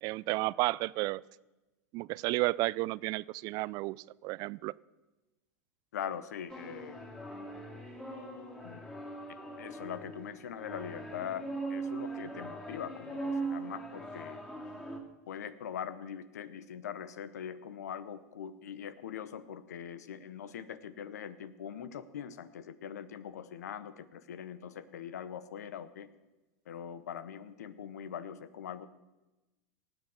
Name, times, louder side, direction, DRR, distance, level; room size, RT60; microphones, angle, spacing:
voice 1, 0.0-1.2 1.9-4.0 4.2-4.7, right 21 dB, 50° right, 22 dB, 0.4 m, -32 dB
voice 2, 5.9-7.0 8.6-8.8 9.3-14.4 15.3-26.1 26.7-28.9, left 8 dB, 80° left, 15 dB, 0.9 m, -42 dB
sound 1, 6.5-15.0, right 3 dB, 10° left, 2.9 m, -40 dB
18.5 x 8.0 x 6.5 m, 1.1 s
hypercardioid pair, 100°, 9 cm